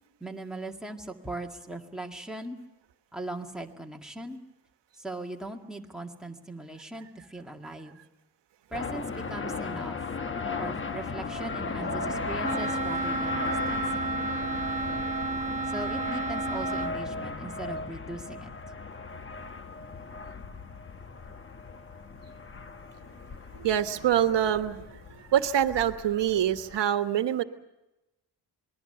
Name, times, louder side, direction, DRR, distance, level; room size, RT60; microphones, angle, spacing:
voice 1, 0.2-2.6 3.1-4.4 5.0-8.0 8.7-10.0 10.6-14.2 15.6-18.5, right 2 dB, ahead, 1 dB, 1.9 m, -39 dB
sound 1, 8.7-26.8, left 3 dB, 30° left, 1.0 m, -36 dB
Wind instrument woodwind instrument, 12.4-17.0, right 3 dB, 15° right, 1.4 m, -31 dB
voice 2, 23.5-27.4, right 10 dB, 80° right, 9 dB, 1.3 m, -25 dB
27.0 x 20.5 x 6.8 m, 0.98 s
wide cardioid pair, 130°, 42 cm